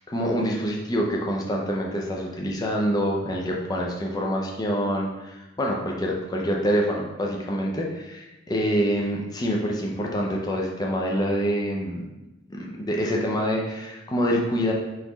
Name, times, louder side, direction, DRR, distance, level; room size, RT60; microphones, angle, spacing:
voice 1, 0.0-12.0 12.5-14.7, equal, 20° left, -1 dB, 0.4 m, -26 dB
4.0 x 3.0 x 3.9 m, 1.0 s
head